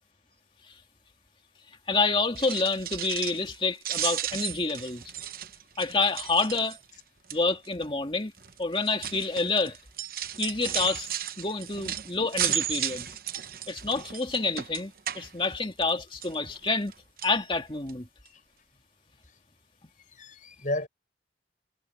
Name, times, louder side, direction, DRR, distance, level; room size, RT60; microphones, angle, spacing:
voice 1, 1.9-5.1 5.8-6.8 7.3-8.3 8.6-9.8 10.4-11.1 11.4-13.1 13.7-16.9 17.2-18.1, left 3 dB, 30° left, 2.3 m, -28 dB
sound 1, 2.2-3.6 3.8-7.0 7.3-7.7 8.4-15.9 16.2-16.9 17.2-17.4 17.9-18.0 18.3-18.4, right 11 dB, 55° right, 1.0 m, -34 dB
voice 2, 20.1-20.9, left 1 dB, 45° left, 6.6 m, -33 dB
head